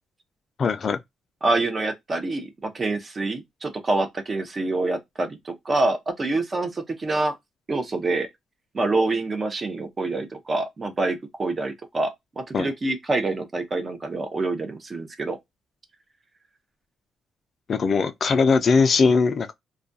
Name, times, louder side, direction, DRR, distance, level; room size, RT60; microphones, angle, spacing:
voice 1, 0.6-1.0 12.5-12.7 17.7-19.5, left 4 dB, 45° left, 0.4 m, -20 dB
voice 2, 1.4-7.4 7.7-8.3 8.7-15.4, right 2 dB, 35° right, 0.6 m, -26 dB
2.4 x 2.2 x 2.6 m
cardioid pair, 90°, 0 cm